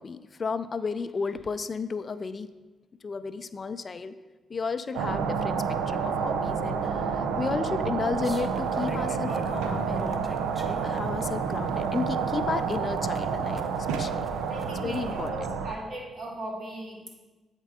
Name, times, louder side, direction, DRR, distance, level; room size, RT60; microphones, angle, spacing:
voice 1, 0.0-2.5 3.0-4.2 4.5-10.3 10.8-14.2 14.8-15.5, left 5 dB, 45° left, 13 dB, 0.3 m, -33 dB
sound 1, 4.9-15.7, right 6 dB, 85° right, 0.4 m, -29 dB
sound 2, 8.2-15.3, left 1 dB, 15° left, 0.9 m, -43 dB
voice 2, 14.5-17.2, right 1 dB, 55° right, -1 dB, 1.9 m, -39 dB
8.1 x 4.5 x 4.9 m, 1.2 s
supercardioid pair, 55°, 0 cm